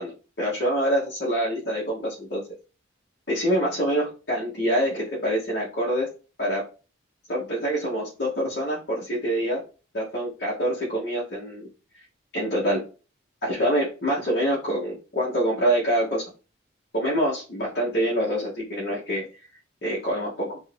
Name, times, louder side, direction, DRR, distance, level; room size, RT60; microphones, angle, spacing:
voice 1, 0.0-2.4 3.3-6.1 6.4-6.7 7.3-9.6 9.9-11.7 12.3-12.9 13.4-16.2 16.9-19.2 19.8-20.6, equal, 55° left, -6 dB, 1.1 m, -25 dB
3.2 x 2.7 x 3.2 m, 0.34 s
head